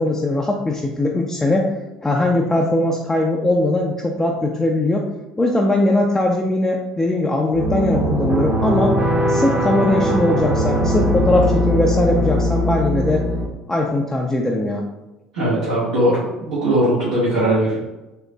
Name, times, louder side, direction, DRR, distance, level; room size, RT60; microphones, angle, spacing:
voice 1, 0.0-1.7 2.0-5.1 5.4-9.0 9.3-13.2 13.7-14.8, left 1 dB, 15° left, -1 dB, 0.4 m, -20 dB
sound 1, 7.5-13.5, equal, 30° right, 0.9 m, -20 dB
voice 2, 15.3-17.8, right 1 dB, 75° right, -10 dB, 1.1 m, -19 dB
3.7 x 2.9 x 2.2 m, 1.0 s
hypercardioid pair, 60°, 3 cm